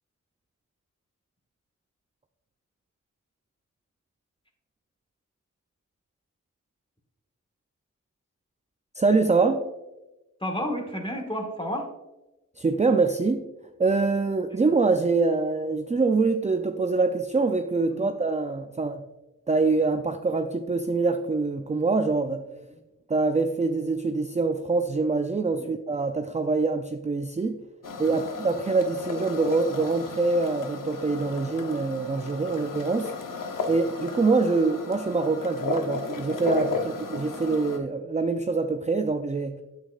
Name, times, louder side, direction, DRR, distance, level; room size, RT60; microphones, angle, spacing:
voice 1, 8.9-9.6 12.6-13.5 13.8-19.1 19.5-22.5 23.1-27.6 28.0-33.1 33.7-39.6, right 3 dB, 20° right, 6 dB, 0.4 m, -25 dB
voice 2, 10.4-11.9 17.9-18.1 25.5-25.7 28.1-28.2 36.7-36.8, equal, 15° left, 3 dB, 1.6 m, -31 dB
sound 1, 27.8-37.8, left 4 dB, 80° left, 0.8 m, -34 dB
9.1 x 8.4 x 2.4 m, 1.0 s
wide cardioid pair, 60°, 32 cm